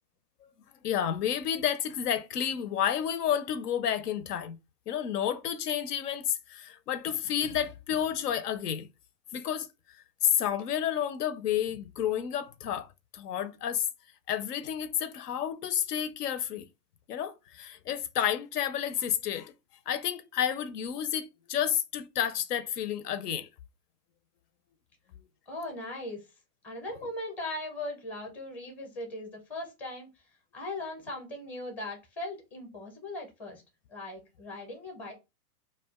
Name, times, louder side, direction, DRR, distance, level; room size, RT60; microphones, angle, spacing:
voice 1, 0.8-4.6 4.9-8.9 9.3-9.7 10.2-12.9 13.1-13.9 14.3-16.7 17.1-19.5 19.9-23.5, left 9 dB, 75° left, 0.6 m, -30 dB
voice 2, 25.5-26.2 26.6-30.1 30.5-33.6 33.9-35.1, left 1 dB, 5° left, 0.6 m, -39 dB
2.4 x 2.2 x 3.4 m
hypercardioid pair, 135°, 47 cm